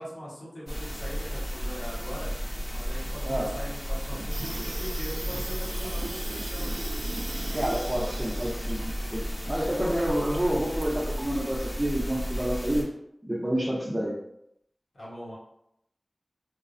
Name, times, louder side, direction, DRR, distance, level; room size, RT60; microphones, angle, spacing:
voice 1, 0.0-2.3 2.7-6.8 14.9-15.4, equal, 75° left, -7 dB, 1.0 m, -41 dB
sound 1, 0.7-12.8, equal, 35° left, 0.9 m, -33 dB
voice 2, 3.2-3.6 7.5-12.9 13.2-14.2, right 1 dB, 25° right, -7 dB, 0.6 m, -29 dB
Water tap faucet / Sink (filling or washing), 4.1-11.6, right 2 dB, 70° right, 0.3 m, -40 dB
3.1 x 2.0 x 2.5 m, 0.77 s
wide cardioid pair, 55°, 0 cm